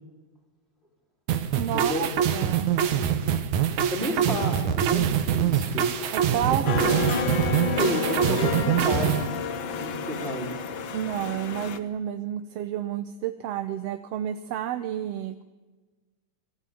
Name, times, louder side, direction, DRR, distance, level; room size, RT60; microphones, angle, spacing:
sound 1, 1.3-9.3, right 9 dB, 80° right, 2.9 m, -24 dB
voice 1, 1.6-2.7 6.1-7.0 10.9-15.4, right 11 dB, 65° right, 9 dB, 1.9 m, -30 dB
voice 2, 3.9-5.9 7.8-9.4 9.8-10.5, right 1 dB, 20° right, 1 dB, 4.5 m, -31 dB
sound 2, 6.7-11.8, left 6 dB, 50° left, 1.6 m, -30 dB
27.0 x 20.5 x 9.5 m, 1.3 s
omnidirectional pair, 3.4 m